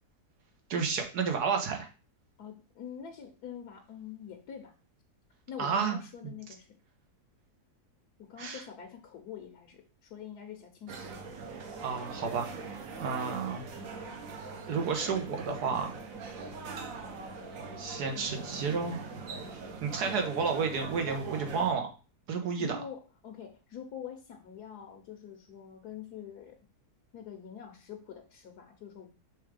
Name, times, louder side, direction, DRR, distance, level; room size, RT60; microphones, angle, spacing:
voice 1, 0.7-1.9 5.6-6.0 6.2-6.3 8.4-8.6 11.8-12.5 13.0-13.6 14.7-15.9 17.8-19.0 19.8-21.9 22.3-22.8, right 5 dB, 80° right, 4 dB, 1.7 m, -31 dB
voice 2, 2.4-4.7 5.5-6.7 8.2-11.1 22.6-26.6 27.1-29.1, left 8 dB, 75° left, 3 dB, 1.4 m, -45 dB
sound 1, 10.9-21.7, right 4 dB, 60° right, 1.3 m, -42 dB
6.4 x 3.6 x 5.0 m, 0.34 s
omnidirectional pair, 1.7 m